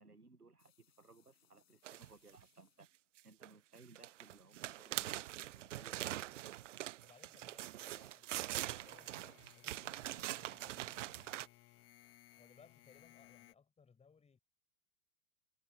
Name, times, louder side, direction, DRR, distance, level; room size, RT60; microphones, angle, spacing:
voice 1, 0.0-2.9 3.2-6.2, right 3 dB, 85° right, 1.7 m, -62 dB
sound 1, 0.6-4.4 4.7-5.4 5.7-5.8 6.4-6.8 7.8-13.2, left 10 dB, 60° left, 6.7 m, -80 dB
sound 2, 1.8-2.4 3.2-3.5 3.8-11.5, right 14 dB, 55° right, 0.6 m, -43 dB
voice 2, 6.0-6.6 7.0-11.4 12.4-14.4, left 5 dB, 15° left, 6.0 m, -66 dB
sound 3, 8.5-13.5, left 17 dB, 30° left, 3.4 m, -63 dB
figure-of-eight pair, 95°, 44 cm